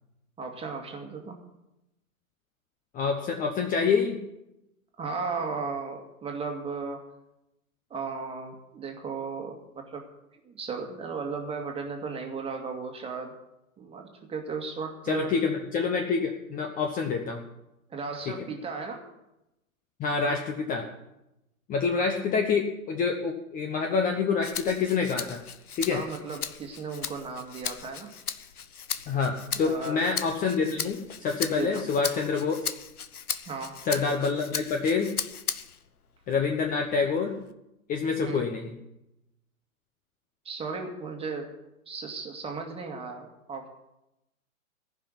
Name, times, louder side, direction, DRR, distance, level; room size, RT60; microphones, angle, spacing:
voice 1, 0.4-1.4 5.0-7.0 7.9-10.0 10.5-13.3 13.8-15.3 17.9-19.0 25.9-28.1 29.6-30.0 31.5-31.8 33.5-33.8 38.2-38.4 40.5-41.5 41.9-43.7, right 4 dB, 15° right, 2 dB, 2.0 m, -35 dB
voice 2, 2.9-4.2 15.1-17.4 20.0-20.9 21.7-25.4 25.8-26.0 29.1-32.6 33.8-35.1 36.3-37.4 37.9-38.7, left 5 dB, 20° left, 3 dB, 1.0 m, -27 dB
Rattle (instrument), 24.4-35.9 36.3-37.5, left 7 dB, 85° left, 1.0 m, -37 dB
15.0 x 6.0 x 9.7 m, 0.91 s
hypercardioid pair, 120°, 43 cm